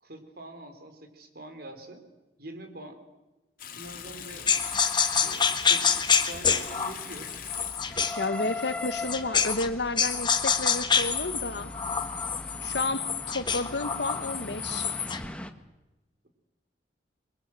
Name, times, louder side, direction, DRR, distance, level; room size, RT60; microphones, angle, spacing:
voice 1, 0.0-2.0 2.4-3.0 3.7-4.5 5.0-7.3 8.3-8.6, right 1 dB, 60° right, 7 dB, 3.9 m, -45 dB
Water tap faucet / Sink (filling or washing) / Bathtub (filling or washing), 3.6-9.3, left 8 dB, 55° left, 2.3 m, -43 dB
sound 1, 3.8-15.5, left 2 dB, 5° left, 1.4 m, -42 dB
sound 2, 4.5-9.7 10.0-15.3, left 6 dB, 25° left, 1.5 m, -27 dB
voice 2, 8.2-11.7 12.6-14.9, left 2 dB, 75° left, 11 dB, 1.5 m, -31 dB
28.0 x 22.5 x 7.7 m, 1.0 s
head